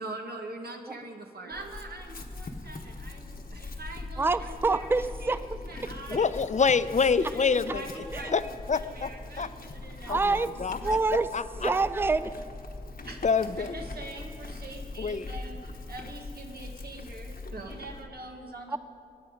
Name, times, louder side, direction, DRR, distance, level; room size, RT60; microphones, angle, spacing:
voice 1, 0.0-4.9 5.2-5.3 5.7-6.2 7.2-8.3 8.9-10.1 10.8-10.9 11.7-11.8 13.0-13.2 13.6-18.8, right 2 dB, 85° right, 2 dB, 1.3 m, -43 dB
Chewing mastication / Livestock farm animals working animals, 1.5-18.1, left 2 dB, 75° left, 1.1 m, -41 dB
voice 2, 4.2-5.6 8.1-8.3 10.1-11.3 11.6-12.4 18.7-18.8, right 3 dB, 15° right, 14 dB, 0.4 m, -27 dB
voice 3, 6.1-8.4 8.7-9.1 9.4-9.5 10.1-11.0 11.3-11.7 13.2-13.8 15.0-15.3, left 5 dB, 50° left, 14 dB, 0.5 m, -27 dB
22.0 x 9.1 x 5.1 m, 2.6 s
wide cardioid pair, 65°, 16 cm